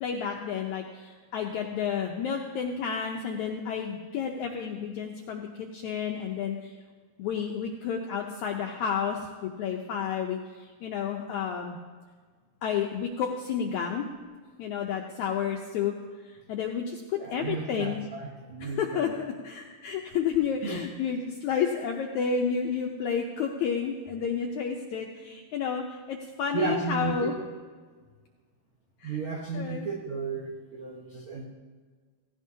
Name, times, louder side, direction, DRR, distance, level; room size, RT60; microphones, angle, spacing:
voice 1, 0.0-6.7 7.2-11.8 12.6-14.1 14.6-15.9 16.3-18.0 18.6-27.4 29.0-29.2 29.5-29.9, left 7 dB, 80° left, 2 dB, 1.7 m, -31 dB
voice 2, 17.2-19.1 20.6-20.8 26.5-27.1 29.0-31.4, right 4 dB, 80° right, -1 dB, 1.2 m, -33 dB
16.5 x 16.0 x 2.8 m, 1.5 s
omnidirectional pair, 4.2 m